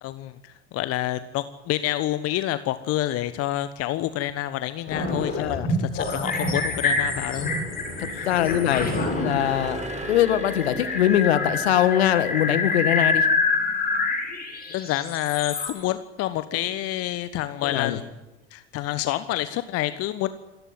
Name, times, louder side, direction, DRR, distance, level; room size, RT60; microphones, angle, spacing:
voice 1, 0.0-7.5 8.1-8.3 14.7-18.1 18.5-20.3, left 14 dB, 45° left, 13 dB, 1.3 m, -28 dB
sound 1, 4.9-15.7, left 3 dB, 25° left, 7.9 m, -27 dB
voice 2, 5.4-5.7 8.0-8.9 9.2-9.8 10.1-13.3 17.7-18.0, left 11 dB, 65° left, 13 dB, 2.0 m, -22 dB
sound 2, 6.6-13.0, right 3 dB, 20° right, 4.2 m, -39 dB
27.0 x 15.5 x 9.5 m, 1.0 s
figure-of-eight pair, 70°, 34 cm